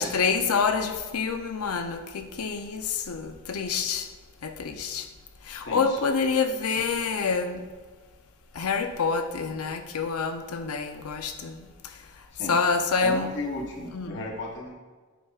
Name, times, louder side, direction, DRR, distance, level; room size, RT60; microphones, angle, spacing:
voice 1, 0.0-4.1 4.4-5.0 5.5-7.6 8.6-11.7 12.4-13.3 13.9-14.3, left 5 dB, 85° left, 0.6 m, -27 dB
voice 2, 5.6-6.0 12.3-12.6 13.0-14.7, left 2 dB, 55° left, 0.9 m, -34 dB
9.0 x 4.7 x 2.4 m
head